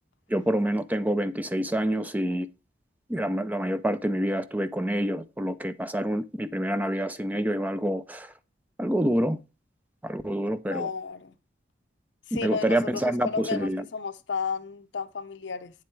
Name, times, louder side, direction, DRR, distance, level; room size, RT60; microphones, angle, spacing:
voice 1, 0.3-2.5 3.1-8.3 8.8-9.4 10.0-10.9 12.3-13.8, right 1 dB, 10° right, 0.4 m, -27 dB
voice 2, 10.7-11.3 12.3-15.7, left 5 dB, 70° left, 0.6 m, -33 dB
8.5 x 7.6 x 3.2 m
head